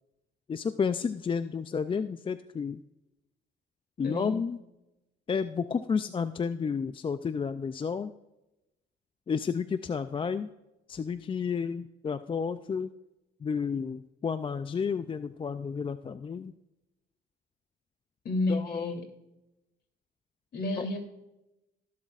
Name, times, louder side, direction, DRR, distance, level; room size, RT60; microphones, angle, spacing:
voice 1, 0.5-2.8 4.0-4.6 5.3-8.1 9.3-10.5 10.9-12.9 13.4-16.5 18.5-19.0 20.8-20.9, left 6 dB, 25° left, 11 dB, 0.3 m, -31 dB
voice 2, 4.0-4.4 18.2-19.0 20.5-21.0, left 2 dB, 55° left, 3 dB, 2.8 m, -31 dB
20.0 x 7.4 x 2.4 m, 0.95 s
cardioid pair, 90°, 20 cm